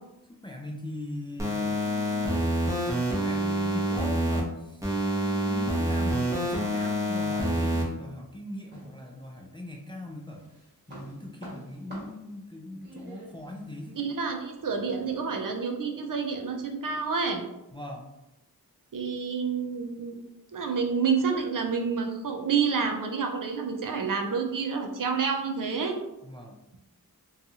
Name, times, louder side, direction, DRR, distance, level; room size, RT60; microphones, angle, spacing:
voice 1, 0.4-2.6 3.1-10.4 10.9-14.0 17.7-18.1 26.2-26.6, left 1 dB, 15° left, 0 dB, 0.3 m, -40 dB
sound 1, 1.4-4.4 4.8-7.8, equal, 10° right, 0.7 m, -27 dB
sound 2, 8.7-9.7 10.1-15.2, right 1 dB, 30° right, 1.2 m, -47 dB
voice 2, 14.0-17.4 18.9-20.2 20.5-26.0, right 5 dB, 60° right, 4 dB, 0.5 m, -29 dB
2.7 x 2.3 x 2.7 m, 0.93 s
wide cardioid pair, 60°, 38 cm